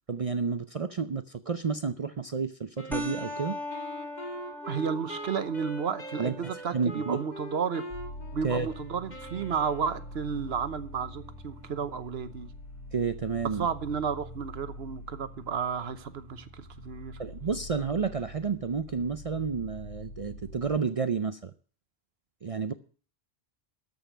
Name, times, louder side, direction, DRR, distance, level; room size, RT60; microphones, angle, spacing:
voice 1, 0.1-3.6 6.2-7.2 8.4-8.7 12.9-13.7 17.2-21.5 22.4-22.7, right 5 dB, 40° right, 0.6 m, -31 dB
Wind instrument woodwind instrument, 2.8-10.2, equal, 45° left, 2.0 m, -43 dB
sound 1, 2.9-11.9, left 1 dB, ahead, 1.5 m, -42 dB
voice 2, 4.6-7.9 8.3-12.5 13.6-17.2, right 6 dB, 80° right, 1.2 m, -32 dB
sound 2, 7.9-20.8, left 1 dB, 75° left, 3.9 m, -45 dB
13.5 x 5.5 x 9.1 m
omnidirectional pair, 1.0 m